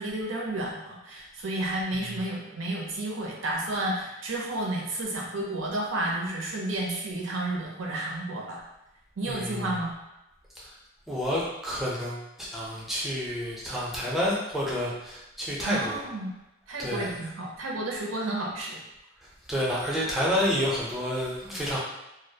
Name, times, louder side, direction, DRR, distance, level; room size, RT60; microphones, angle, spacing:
voice 1, 0.0-8.6 9.2-9.9 15.6-16.3 16.7-18.8, right 1 dB, 85° right, -1 dB, 0.6 m, -31 dB
voice 2, 9.3-9.8 10.6-10.7 11.1-16.0 16.8-17.1 19.5-21.8, equal, ahead, -6 dB, 0.5 m, -29 dB
2.4 x 2.1 x 2.7 m, 0.94 s
head